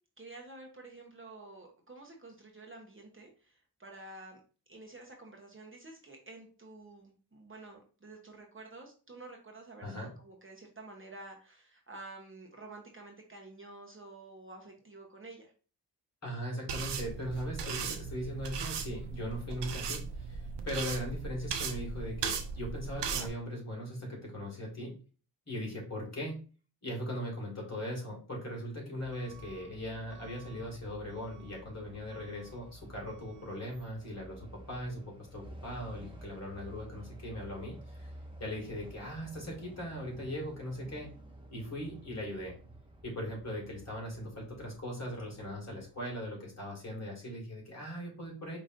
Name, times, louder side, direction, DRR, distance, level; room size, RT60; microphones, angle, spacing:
voice 1, 0.2-4.4 4.7-15.5, right 2 dB, 30° right, 1 dB, 1.0 m, -50 dB
voice 2, 9.8-10.1 16.2-24.9 25.5-26.4 26.8-38.1 38.4-41.1 41.5-42.6 43.0-48.6, equal, 40° left, -2 dB, 2.2 m, -39 dB
sound 1, 16.7-23.3, right 5 dB, 90° right, 0.6 m, -37 dB
Truck / Alarm, 29.0-46.2, right 1 dB, 10° right, 0.9 m, -52 dB
5.0 x 3.0 x 2.6 m, 0.37 s
cardioid pair, 65°, 41 cm